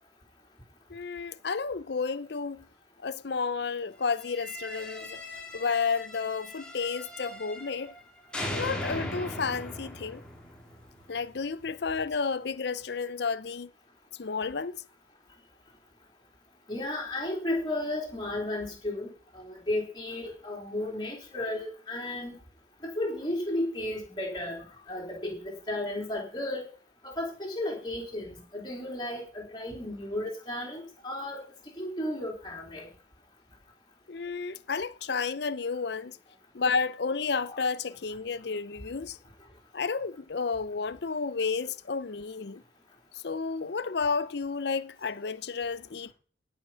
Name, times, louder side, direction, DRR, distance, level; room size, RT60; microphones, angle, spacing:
voice 1, 0.9-2.7 3.0-5.2 5.5-7.9 8.5-10.2 11.1-13.7 14.1-14.8 34.1-36.2 36.5-39.2 39.7-42.6 43.1-46.1, left 5 dB, 60° left, 0.6 m, -31 dB
sound 1, 4.2-8.0 8.3-11.4, left 1 dB, 5° left, 2.4 m, -39 dB
voice 2, 16.7-19.1 19.3-22.4 22.8-26.6 27.0-31.4 31.8-32.9 37.5-37.6, left 1 dB, 25° left, 3.4 m, -34 dB
17.0 x 5.9 x 5.7 m
head